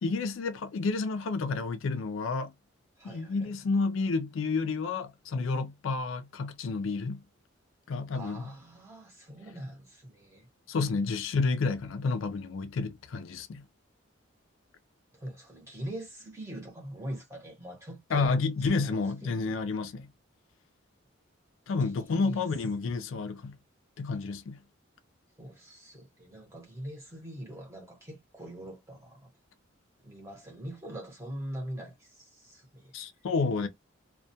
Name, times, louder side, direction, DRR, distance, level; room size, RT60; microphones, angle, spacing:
voice 1, 0.0-2.5 3.0-7.2 7.9-8.5 10.7-13.6 18.1-20.1 21.7-23.6 24.0-24.6 32.9-33.7, left 4 dB, 75° left, 0.4 m, -30 dB
voice 2, 3.0-3.5 8.1-10.5 15.1-19.6 21.8-22.4 25.4-29.3 30.0-32.9, right 1 dB, 15° right, 0.8 m, -43 dB
2.2 x 2.1 x 2.6 m
head